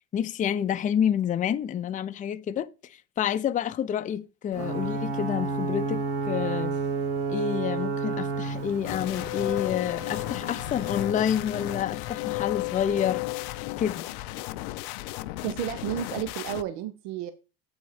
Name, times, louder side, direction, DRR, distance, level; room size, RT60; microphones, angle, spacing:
voice 1, 0.1-6.7 7.3-13.2 13.8-14.0, left 9 dB, 25° left, 0.5 m, -28 dB
Ocean / Boat Water vehicle / Alarm, 4.5-12.1, right 4 dB, 50° right, 1.4 m, -32 dB
sound 1, 8.8-16.6, left 19 dB, 75° left, 0.5 m, -33 dB
voice 2, 15.4-17.3, right 10 dB, 80° right, 0.7 m, -32 dB
7.3 x 4.1 x 4.9 m
supercardioid pair, 95°, 31 cm